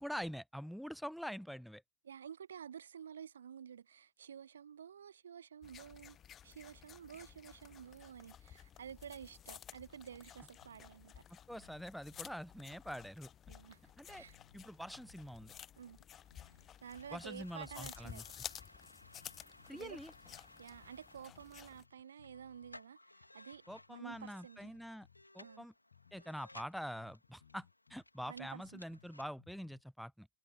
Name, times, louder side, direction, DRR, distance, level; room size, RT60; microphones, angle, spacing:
voice 1, 0.0-1.8 11.3-13.3 14.0-14.2 14.5-15.5 17.1-18.2 19.7-20.1 23.7-25.1 25.3-25.7 26.1-30.3, equal, ahead, 0.3 m, -45 dB
voice 2, 2.0-6.2 6.4-11.2 13.5-14.4 15.8-16.0 16.8-18.3 19.7-20.0 20.6-24.7 25.4-25.7 28.3-28.8, right 8 dB, 65° right, 0.9 m, -51 dB
sound 1, 5.6-21.8, left 10 dB, 25° left, 1.0 m, -54 dB
sound 2, 10.6-10.9 11.2-11.3 11.5-13.1 13.6-15.7 16.0-17.9 18.3-18.5 18.9-20.5 20.8-21.5 21.7-22.8 23.2-25.3 25.6-25.7 25.9-26.2 26.5-29.8, left 7 dB, 70° left, 0.6 m, -66 dB
sound 3, 16.2-29.2, left 1 dB, 85° left, 2.6 m, -60 dB
figure-of-eight pair, 90°, 0 cm